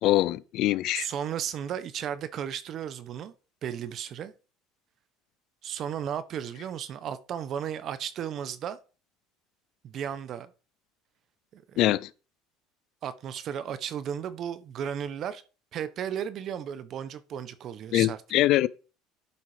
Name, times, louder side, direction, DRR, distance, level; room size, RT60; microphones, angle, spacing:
voice 1, 0.0-1.1 11.8-12.1 17.9-18.7, left 15 dB, 60° left, 0.4 m, -23 dB
voice 2, 0.9-3.3 3.6-4.3 5.6-8.8 9.8-10.5 11.5-11.9 13.0-15.4 15.7-18.2, right 9 dB, 45° right, 1.0 m, -34 dB
11.5 x 4.1 x 5.0 m
supercardioid pair, 110°, 0 cm